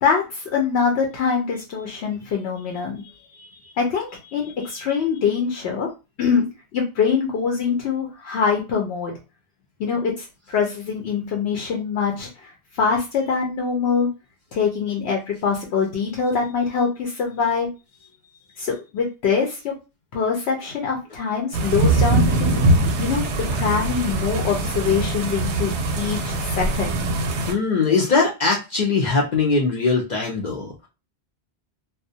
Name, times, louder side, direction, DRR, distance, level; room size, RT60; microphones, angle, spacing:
voice 1, 0.0-3.0 3.8-5.9 6.2-9.2 9.8-14.1 14.5-17.7 18.6-19.7 20.1-22.6 23.0-23.2 23.5-27.0, left 6 dB, 80° left, 1 dB, 0.8 m, -24 dB
sound 1, 21.5-27.5, right 2 dB, 90° right, 0.9 m, -22 dB
voice 2, 27.5-30.9, left 4 dB, 55° left, -2 dB, 0.5 m, -21 dB
2.3 x 2.1 x 2.6 m, 0.28 s
omnidirectional pair, 1.1 m